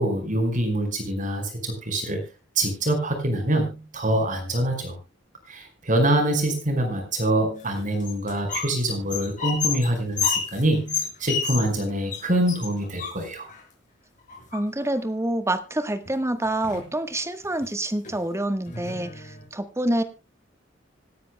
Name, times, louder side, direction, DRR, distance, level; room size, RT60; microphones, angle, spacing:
voice 1, 0.0-2.2 2.5-5.0 5.5-13.5, right 1 dB, 45° right, 5 dB, 5.0 m, -25 dB
sound 1, 7.6-8.7 9.0-11.8 12.1-12.2 12.5-13.6 14.3-15.0 16.1-16.2 16.5-16.9 17.4-17.7 18.0-18.2 18.7-19.5, left 6 dB, 45° left, 5.8 m, -30 dB
voice 2, 14.5-20.0, right 1 dB, 15° right, 9 dB, 1.3 m, -27 dB
26.0 x 9.9 x 2.2 m, 0.28 s
head